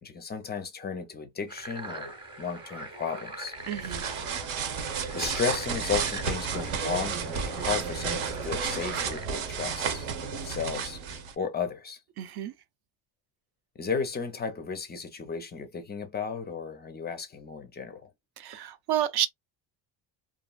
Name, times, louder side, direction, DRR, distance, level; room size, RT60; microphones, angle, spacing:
voice 1, 0.0-3.6 5.1-11.0 11.4-12.0 13.8-18.1, left 6 dB, 20° left, 0.4 m, -34 dB
sound 1, 1.5-9.3, right 2 dB, 10° right, 0.7 m, -42 dB
sound 2, 3.6-11.3, right 6 dB, 70° right, 0.9 m, -32 dB
voice 2, 3.7-4.0 12.2-12.5 18.4-19.3, right 11 dB, 50° right, 0.6 m, -30 dB
2.9 x 2.5 x 2.2 m
cardioid pair, 135°, 50 cm